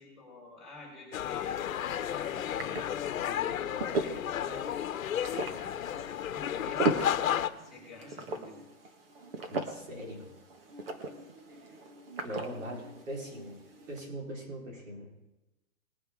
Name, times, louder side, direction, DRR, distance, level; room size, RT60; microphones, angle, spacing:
voice 1, 0.0-2.7 3.0-8.6, left 2 dB, ahead, -5 dB, 5.7 m, -49 dB
sound 1, 1.1-7.5, left 10 dB, 75° left, 1.0 m, -33 dB
sound 2, 1.2-14.1, right 3 dB, 45° right, 1.7 m, -39 dB
voice 2, 9.5-10.3 12.2-13.6 13.9-15.2, equal, 70° right, -1 dB, 4.5 m, -41 dB
21.0 x 9.4 x 3.8 m, 1.0 s
hypercardioid pair, 175°, 41 cm